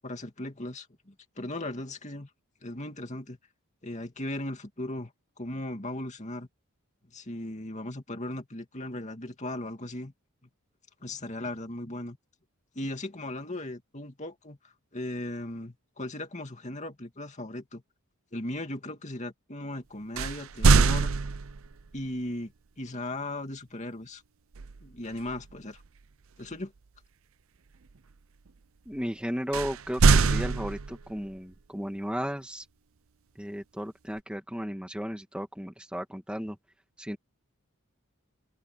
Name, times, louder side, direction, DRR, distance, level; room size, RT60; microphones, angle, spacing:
voice 1, 0.0-2.3 2.6-3.4 3.8-5.1 5.4-6.5 7.1-10.1 11.0-12.2 12.7-17.8 18.3-21.1 21.9-22.5 22.8-24.2 24.8-25.8 26.4-26.7, left 1 dB, 30° left, 2.5 m, -37 dB
sound 1, 20.2-21.8 24.5-24.9 25.3-25.5 29.5-31.2, right 4 dB, 65° right, 0.6 m, -23 dB
voice 2, 28.9-32.7 33.4-36.6 37.0-37.2, equal, 5° right, 2.0 m, -35 dB
open air
head